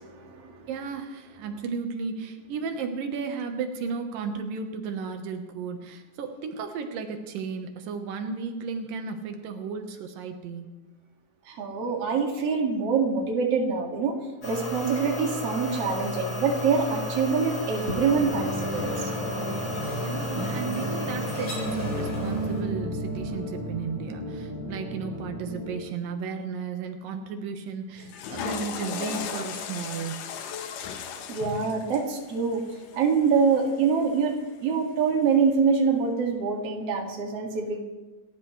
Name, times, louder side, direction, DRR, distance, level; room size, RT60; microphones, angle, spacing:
voice 1, 0.0-0.6 11.5-14.2 14.4-19.1 31.3-32.6 32.9-37.8, right 5 dB, 50° right, 1 dB, 2.9 m, -25 dB
voice 2, 0.7-10.7 20.0-30.3, right 5 dB, 90° right, 5 dB, 2.9 m, -34 dB
sound 1, 14.4-22.6, left 1 dB, 30° left, 6.5 m, -33 dB
sound 2, 18.2-25.7, equal, 5° right, 5.2 m, -33 dB
Water / Toilet flush, 28.0-34.2, left 7 dB, 80° left, 2.7 m, -37 dB
28.5 x 13.5 x 3.2 m, 1.2 s
omnidirectional pair, 3.8 m